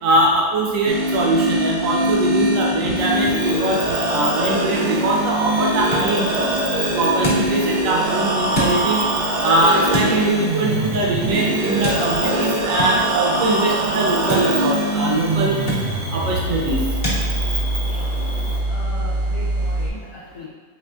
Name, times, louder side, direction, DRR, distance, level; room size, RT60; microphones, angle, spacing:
voice 1, 0.0-6.5 7.0-9.1 9.4-15.6 16.1-16.8, right 2 dB, 60° right, -2 dB, 1.1 m, -21 dB
sound 1, 0.9-19.9, right 1 dB, 90° right, 0.5 m, -23 dB
Cricket, 3.0-18.6, right 1 dB, 30° right, 0.7 m, -32 dB
sound 2, 5.6-17.2, equal, 40° left, 1.1 m, -31 dB
voice 2, 18.7-20.5, left 1 dB, 75° left, -5 dB, 1.2 m, -38 dB
5.0 x 3.2 x 2.4 m, 1.5 s
omnidirectional pair, 1.7 m